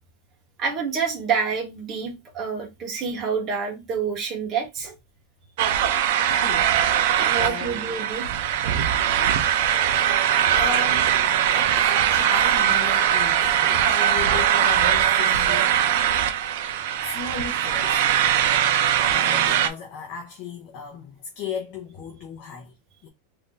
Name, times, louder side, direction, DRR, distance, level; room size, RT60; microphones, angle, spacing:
voice 1, 0.6-5.0 7.2-8.3 9.0-9.5 16.2-16.3, right 6 dB, 25° right, 1.0 m, -28 dB
sound 1, 5.6-19.7, right 10 dB, 55° right, 0.4 m, -21 dB
voice 2, 6.1-6.8 7.4-7.9 9.9-11.3 11.5-15.8 17.0-18.2 19.1-22.7 23.0-23.1, left 5 dB, 40° left, 0.7 m, -35 dB
2.6 x 2.5 x 3.8 m
supercardioid pair, 165°, 0 cm